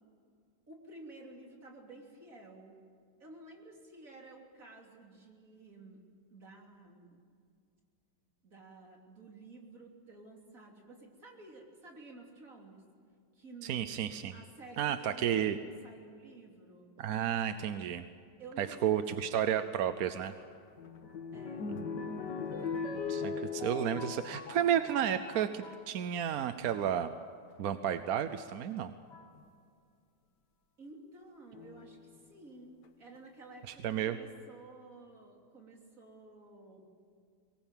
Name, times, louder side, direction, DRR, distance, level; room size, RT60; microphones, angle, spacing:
voice 1, 0.7-2.8 3.2-6.0 6.3-7.2 8.4-12.9 13.3-13.8 14.3-16.9 18.4-19.1 19.3-19.7 21.3-21.8 30.8-36.8, right 2 dB, 45° right, 0 dB, 3.6 m, -52 dB
voice 2, 13.6-14.3 14.8-15.6 17.0-18.0 18.6-20.3 21.7-21.8 23.1-27.1 27.6-28.9 33.7-34.2, right 9 dB, 60° right, 10 dB, 1.0 m, -32 dB
sound 1, 20.3-25.9 26.6-27.1 28.3-28.4 29.1-29.4 31.5-32.2 32.8-32.9 33.2-33.3, left 5 dB, 65° left, 1.8 m, -40 dB
23.5 x 19.5 x 9.1 m, 2.3 s
omnidirectional pair, 2.0 m